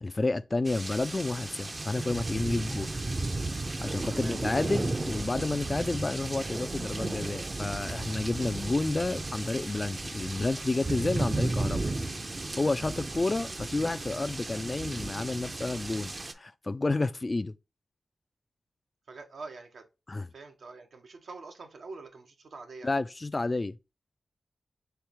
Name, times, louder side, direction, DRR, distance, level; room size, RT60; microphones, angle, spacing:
voice 1, 0.0-2.9 3.8-11.9 12.6-17.5 20.1-20.3 22.8-23.8, left 2 dB, 40° left, 0.3 m, -30 dB
sound 1, 0.6-16.3, right 2 dB, 40° right, 0.6 m, -34 dB
voice 2, 4.1-4.5 19.1-19.9 20.3-22.9, right 3 dB, 80° right, 0.9 m, -45 dB
4.5 x 3.2 x 3.5 m
cardioid pair, 45°, 0 cm